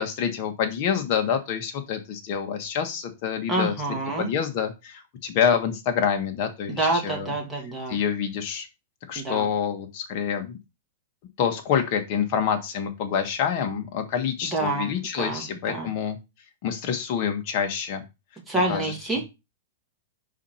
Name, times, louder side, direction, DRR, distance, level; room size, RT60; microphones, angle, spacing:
voice 1, 0.0-3.7 4.2-7.3 7.9-8.7 9.1-10.6 11.4-16.2 16.6-18.0 18.7-18.9, left 7 dB, 45° left, 6 dB, 1.5 m, -27 dB
voice 2, 3.5-4.3 6.7-8.0 9.2-9.5 14.4-14.9 15.2-15.9 18.5-19.3, right 2 dB, 5° right, -3 dB, 2.2 m, -27 dB
4.9 x 4.3 x 5.6 m, 0.25 s
supercardioid pair, 150°, 0 cm